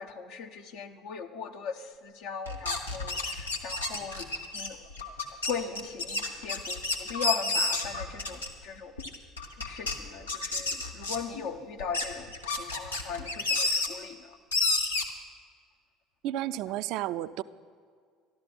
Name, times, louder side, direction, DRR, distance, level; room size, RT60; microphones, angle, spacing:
voice 1, 0.0-4.3 4.5-4.8 5.4-8.9 9.6-14.4, left 6 dB, 65° left, 5 dB, 1.0 m, -38 dB
sound 1, 2.5-8.6 9.0-9.9 10.3-11.4 11.8-13.9 14.5-15.0, left 3 dB, 90° left, 1.1 m, -30 dB
voice 2, 16.2-17.4, right 13 dB, 60° right, 15 dB, 0.4 m, -32 dB
13.0 x 12.0 x 6.1 m, 2.1 s
figure-of-eight pair, 65°, 0 cm